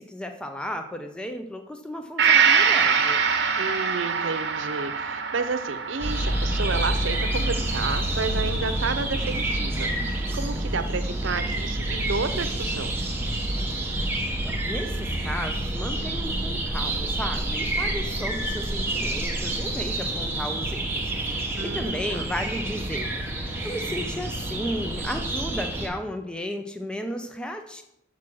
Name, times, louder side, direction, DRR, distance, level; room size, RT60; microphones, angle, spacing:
voice 1, 0.0-3.2 14.4-27.8, equal, 5° left, 5 dB, 0.5 m, -34 dB
Gong, 2.2-9.8 10.2-10.3, right 6 dB, 65° right, 1.0 m, -25 dB
voice 2, 3.6-12.9 21.6-22.3, right 4 dB, 90° right, 10 dB, 0.7 m, -31 dB
sound 1, 6.0-25.9, right 1 dB, 10° right, 1.0 m, -28 dB
6.1 x 5.9 x 6.1 m, 0.82 s
head